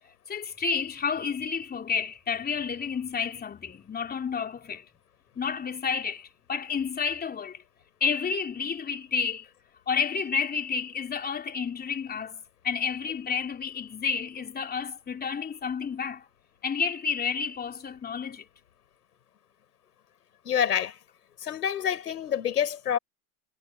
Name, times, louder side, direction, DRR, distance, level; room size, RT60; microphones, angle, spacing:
voice 1, 0.3-4.9 5.4-7.6 8.0-9.5 9.9-16.2 16.6-18.5, left 6 dB, 20° left, 3.5 m, -30 dB
voice 2, 20.4-21.0 21.4-23.0, left 9 dB, 90° left, 6.1 m, -27 dB
hypercardioid pair, 105°, 46 cm